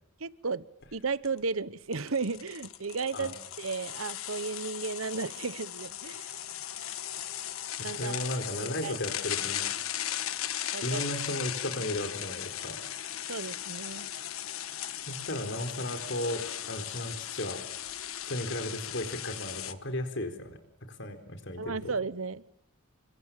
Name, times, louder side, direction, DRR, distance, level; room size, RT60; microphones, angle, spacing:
voice 1, 0.2-0.6 0.9-6.4 7.8-8.3 8.6-9.0 10.7-11.0 13.3-14.1 21.6-22.4, right 4 dB, 80° right, 17 dB, 1.0 m, -34 dB
sound 1, 0.8-0.9 1.2-1.4 1.9-19.7, left 11 dB, 80° left, 1.5 m, -37 dB
voice 2, 8.0-9.7 10.8-12.8 15.0-17.6 18.2-20.6 21.0-21.9, left 1 dB, 60° left, 8 dB, 4.2 m, -35 dB
29.5 x 24.0 x 7.5 m, 0.72 s
head